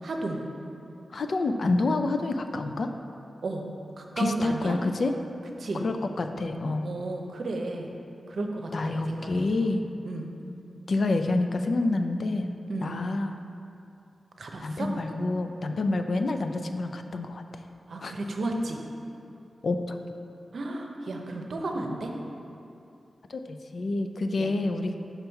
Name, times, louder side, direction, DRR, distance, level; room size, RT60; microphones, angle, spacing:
voice 1, 0.0-0.4 3.4-3.6 4.0-4.8 5.6-5.8 6.8-7.9 8.3-9.7 10.0-10.3 12.7-13.0 14.4-14.9 17.9-18.8 20.5-22.1 24.4-24.5, right 2 dB, 70° right, 2 dB, 0.7 m, -33 dB
voice 2, 1.1-2.9 4.2-5.1 5.7-6.9 8.7-9.8 10.9-12.5 12.8-13.3 14.6-17.4 18.0-18.1 19.6-20.0 23.3-25.0, left 2 dB, 65° left, 7 dB, 0.4 m, -28 dB
5.7 x 5.3 x 4.5 m, 2.7 s
wide cardioid pair, 85°, 0 cm